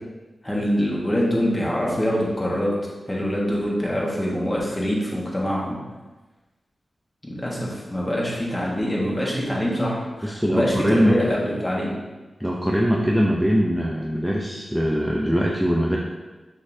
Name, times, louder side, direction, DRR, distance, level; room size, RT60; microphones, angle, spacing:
voice 1, 0.4-2.7 3.1-5.8 7.2-11.9, equal, 20° left, -4 dB, 1.7 m, -24 dB
voice 2, 10.2-11.2 12.4-16.0, equal, 5° right, -2 dB, 0.6 m, -22 dB
6.5 x 5.4 x 2.7 m, 1.2 s
wide cardioid pair, 75°, 0 cm